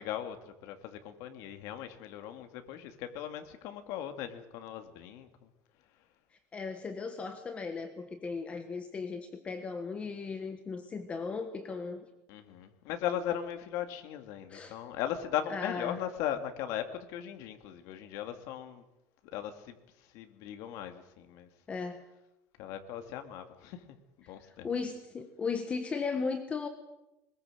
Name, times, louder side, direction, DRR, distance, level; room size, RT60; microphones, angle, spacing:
voice 1, 0.0-5.3 12.3-18.8 19.3-19.8 20.1-21.5 22.6-23.8 24.3-24.7, left 10 dB, 70° left, 7 dB, 2.3 m, -38 dB
voice 2, 6.5-12.0 14.5-14.8 15.5-16.0 21.7-22.0 24.2-26.7, left 4 dB, 20° left, 7 dB, 1.5 m, -36 dB
22.0 x 20.5 x 7.9 m, 0.94 s
cardioid pair, 170°, 6 cm